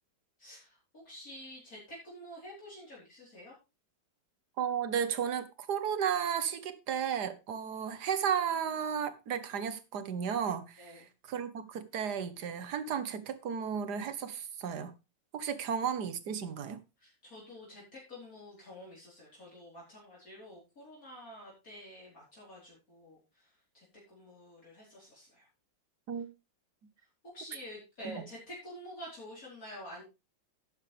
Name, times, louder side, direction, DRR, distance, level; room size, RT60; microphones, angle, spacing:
voice 1, 0.4-3.5 10.8-11.1 17.0-23.5 23.7-25.5 27.3-30.0, equal, 50° left, 4.6 m, -49 dB
voice 2, 4.6-14.9 15.3-16.8 26.1-26.3 28.0-28.3, right 8 dB, 65° right, 1.7 m, -34 dB
11.5 x 9.6 x 3.4 m
omnidirectional pair, 2.0 m